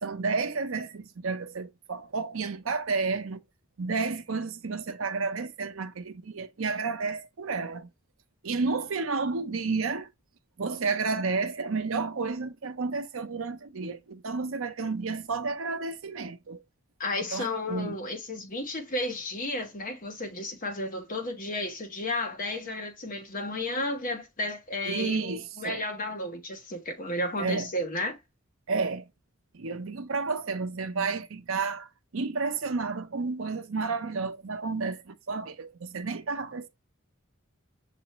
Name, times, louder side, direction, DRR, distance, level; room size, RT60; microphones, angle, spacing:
voice 1, 0.0-3.4 3.8-7.9 8.4-10.1 10.6-16.6 17.3-17.9 24.9-25.8 27.4-27.7 28.7-29.1 29.5-36.7, right 4 dB, 70° right, 0.6 m, -31 dB
voice 2, 17.0-28.2, left 1 dB, 40° left, 1.1 m, -33 dB
6.8 x 2.5 x 3.0 m
head